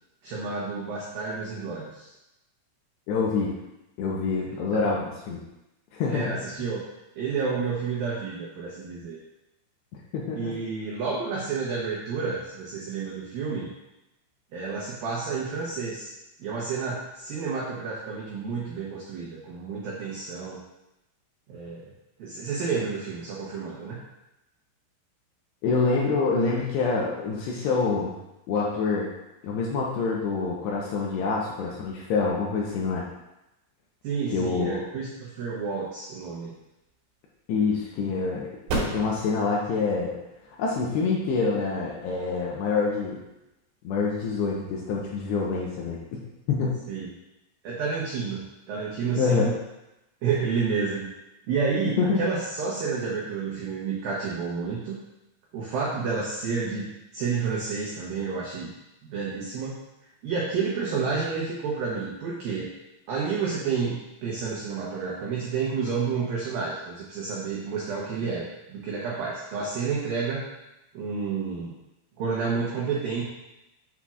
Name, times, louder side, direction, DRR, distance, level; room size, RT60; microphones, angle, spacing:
voice 1, 0.2-2.1 4.5-4.6 6.1-6.8 7.2-9.2 10.4-13.7 14.5-16.1 16.4-20.6 21.5-21.9 22.2-24.0 34.0-36.5 46.9-47.1 47.6-49.6 50.2-51.1 51.5-55.0 55.5-58.7 59.0-59.8 60.2-62.7 63.1-70.5 70.9-71.7 72.2-73.2, right 5 dB, 85° right, -5 dB, 2.0 m, -30 dB
voice 2, 3.1-3.5 4.0-5.4 5.9-6.3 10.1-10.5 25.6-28.2 28.5-29.1 29.4-33.0 34.3-34.8 37.5-38.5 38.8-40.1 40.6-43.2 43.8-46.0 46.5-46.8 49.2-49.5 52.0-52.2, left 4 dB, 80° left, -3 dB, 2.6 m, -26 dB
sound 1, 36.5-43.4, right 2 dB, 70° right, 3.7 m, -38 dB
8.2 x 7.3 x 2.4 m, 0.94 s
omnidirectional pair, 5.7 m